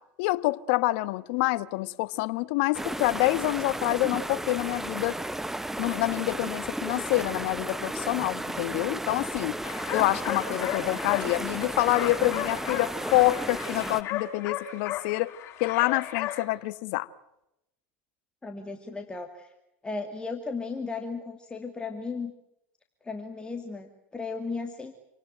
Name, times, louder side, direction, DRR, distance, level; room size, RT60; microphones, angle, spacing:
voice 1, 0.2-5.2 5.8-9.6 9.9-15.3 15.6-17.1, left 19 dB, 65° left, 1.3 m, -27 dB
sound 1, 2.7-14.0, right 1 dB, 5° right, 1.0 m, -34 dB
sound 2, 9.6-16.4, left 12 dB, 45° left, 7.7 m, -35 dB
voice 2, 18.4-19.5 19.8-22.3 23.0-24.9, left 4 dB, 15° left, 2.5 m, -35 dB
28.0 x 18.5 x 9.1 m
hypercardioid pair, 105°, 7 cm